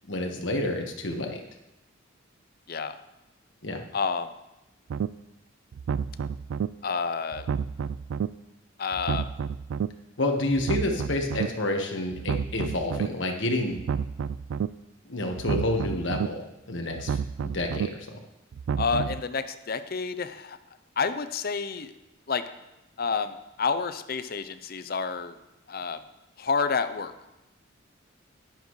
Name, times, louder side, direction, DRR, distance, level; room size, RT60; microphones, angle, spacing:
voice 1, 0.1-1.4 3.6-3.8 10.2-13.8 15.1-17.2 17.5-18.2, left 1 dB, 65° left, 3 dB, 1.4 m, -29 dB
voice 2, 3.9-4.3 6.8-7.5 8.8-9.3 18.8-20.6 21.0-21.9 22.3-22.4 23.0-25.4 25.7-26.0 26.4-27.1, left 5 dB, 50° left, 11 dB, 0.6 m, -29 dB
sound 1, 4.9-5.1 5.7-6.7 7.3-8.3 8.9-9.9 10.5-11.5 12.1-13.1 13.7-14.7 15.3-16.3 16.9-17.9 18.5-19.2, right 7 dB, 80° right, 0.3 m, -30 dB
12.0 x 10.5 x 3.2 m, 0.95 s
head